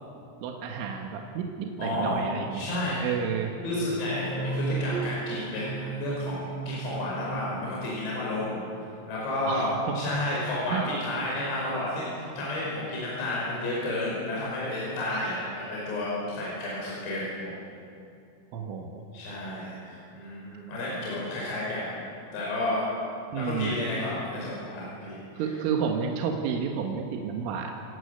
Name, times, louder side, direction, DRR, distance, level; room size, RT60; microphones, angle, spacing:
voice 1, 0.4-2.6 3.0-3.5 9.5-10.0 10.7-10.9 15.1-15.4 18.5-19.0 23.3-23.8 25.4-27.7, right 6 dB, 75° right, 2 dB, 3.9 m, -31 dB
voice 2, 1.8-2.2 2.5-3.1 3.6-8.6 9.1-9.7 10.0-17.5 19.1-21.9 22.3-22.8 23.3-25.5, left 1 dB, 55° left, -5 dB, 7.4 m, -31 dB
sound 1, 4.0-8.5, right 4 dB, 60° right, 4.3 m, -35 dB
29.0 x 19.5 x 8.2 m, 2.6 s
omnidirectional pair, 5.9 m